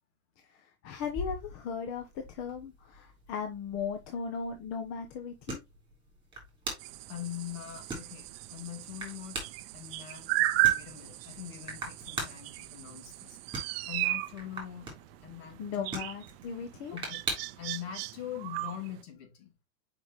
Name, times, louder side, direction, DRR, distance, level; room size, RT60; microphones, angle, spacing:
voice 1, 0.4-5.6 15.6-17.0, left 6 dB, 35° left, 1.0 m, -37 dB
sound 1, 1.0-17.7, right 2 dB, 10° right, 3.6 m, -43 dB
sound 2, 6.8-19.0, right 17 dB, 45° right, 0.5 m, -35 dB
voice 2, 7.1-9.4 9.7-13.4 13.9-14.9 15.2-16.0 16.9-17.2 17.6-19.5, left 11 dB, 55° left, 2.6 m, -43 dB
6.2 x 5.3 x 3.1 m
supercardioid pair, 145°, 44 cm